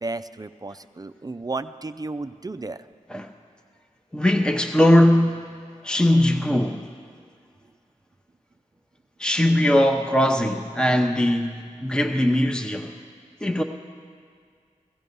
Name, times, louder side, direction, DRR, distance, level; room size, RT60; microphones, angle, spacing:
voice 1, 0.0-2.9, right 3 dB, 30° right, 10 dB, 0.5 m, -33 dB
voice 2, 4.1-5.5 5.8-6.8 9.2-12.9 13.4-13.6, left 1 dB, 5° left, 3 dB, 0.8 m, -20 dB
17.0 x 14.5 x 5.4 m, 2.1 s
cardioid pair, 55°, 14 cm